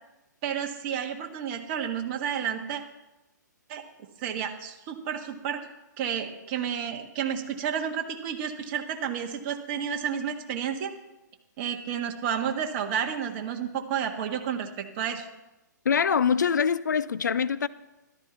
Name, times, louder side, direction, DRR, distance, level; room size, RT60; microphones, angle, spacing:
voice 1, 0.4-2.8 3.7-3.8 4.2-5.6 6.0-10.9 11.6-15.2, right 8 dB, 35° right, 1.6 m, -31 dB
voice 2, 15.9-17.7, left 7 dB, 70° left, 0.5 m, -24 dB
13.5 x 12.5 x 4.1 m
figure-of-eight pair, 125°, 10 cm